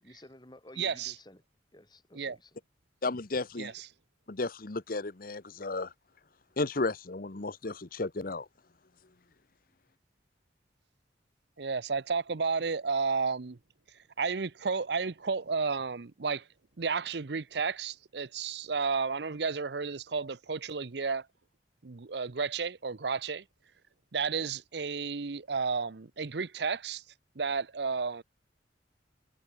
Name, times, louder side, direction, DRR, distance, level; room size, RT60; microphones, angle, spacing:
voice 1, 0.0-1.4 1.7-2.6 24.4-24.5, left 1 dB, 25° left, 3.7 m, -53 dB
voice 2, 0.8-1.1 2.1-2.4 3.6-3.9 11.6-13.6 14.2-16.5 16.8-21.3 21.8-23.4 24.1-27.0 27.4-28.2, right 5 dB, 65° right, 0.7 m, -32 dB
voice 3, 3.0-3.7 4.3-5.9 6.6-8.5, left 3 dB, 50° left, 1.0 m, -33 dB
head